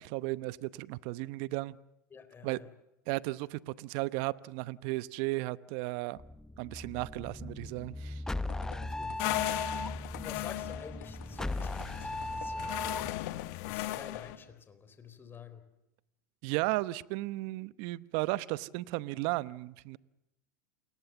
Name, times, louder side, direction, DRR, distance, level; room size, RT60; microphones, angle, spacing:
voice 1, 0.0-1.8 2.4-2.6 3.1-6.2 6.6-8.2 16.4-20.0, right 20 dB, 60° right, 17 dB, 0.9 m, -35 dB
voice 2, 2.1-2.7 8.6-13.1 13.7-15.7, left 6 dB, 25° left, 10 dB, 3.9 m, -50 dB
sound 1, 6.2-13.1, left 1 dB, 5° left, 0.9 m, -38 dB
sound 2, 8.4-14.6, left 13 dB, 80° left, 1.2 m, -48 dB
sound 3, 9.2-14.4, left 17 dB, 60° left, 1.6 m, -37 dB
29.0 x 20.5 x 7.1 m, 0.90 s
hypercardioid pair, 110°, 9 cm